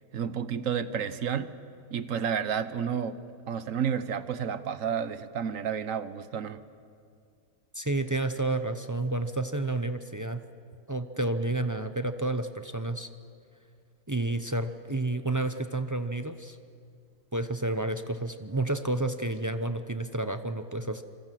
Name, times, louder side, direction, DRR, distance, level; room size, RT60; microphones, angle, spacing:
voice 1, 0.1-1.5 1.9-3.2 3.5-6.6, right 7 dB, 55° right, 12 dB, 1.2 m, -31 dB
voice 2, 7.7-10.4 10.9-13.1 14.1-16.6 17.3-21.0, right 2 dB, 25° right, 8 dB, 0.4 m, -30 dB
26.5 x 25.0 x 7.6 m, 2.3 s
omnidirectional pair, 1.7 m